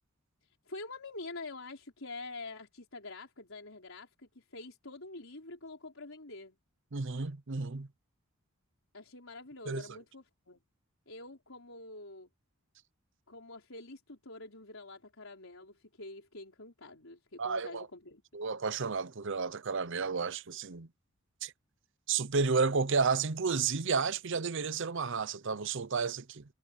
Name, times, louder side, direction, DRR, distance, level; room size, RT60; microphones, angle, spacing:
voice 1, 0.6-6.6 8.9-10.6 11.1-12.3 13.3-18.2, left 2 dB, 70° left, 4.9 m, -46 dB
voice 2, 6.9-7.9 9.7-9.8 17.4-17.9 18.3-20.9 21.4-21.5 22.1-26.4, right 5 dB, 60° right, 0.8 m, -31 dB
head